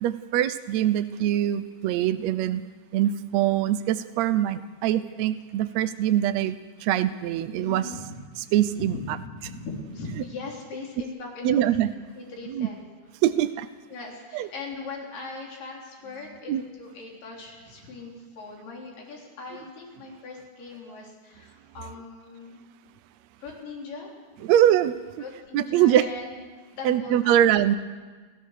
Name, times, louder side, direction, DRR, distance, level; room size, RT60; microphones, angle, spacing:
voice 1, 0.0-2.6 2.9-6.6 6.8-7.9 8.5-8.9 11.4-11.9 12.5-12.7 13.2-13.7 14.3-14.5 16.5-16.6 24.4-25.0 25.5-26.0 26.8-27.8, right 11 dB, 75° right, 11 dB, 1.7 m, -23 dB
voice 2, 7.6-8.2 8.8-11.6 12.2-12.9 13.9-22.6 23.4-24.1 25.2-26.5 26.8-27.4, left 3 dB, 85° left, -1 dB, 5.2 m, -39 dB
29.5 x 13.5 x 6.5 m, 1.3 s
omnidirectional pair, 3.8 m